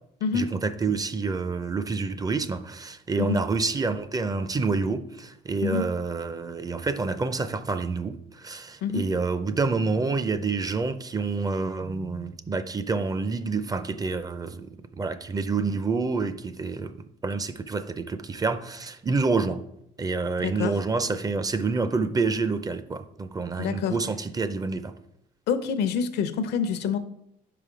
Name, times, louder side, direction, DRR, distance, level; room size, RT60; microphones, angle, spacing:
voice 1, 0.3-16.9 17.2-19.6 20.0-24.9, right 4 dB, 20° right, 0.5 m, -28 dB
voice 2, 20.4-20.7 23.6-24.0 25.5-27.0, left 6 dB, 75° left, 0.7 m, -26 dB
5.2 x 5.0 x 5.0 m
cardioid pair, 110°, 17 cm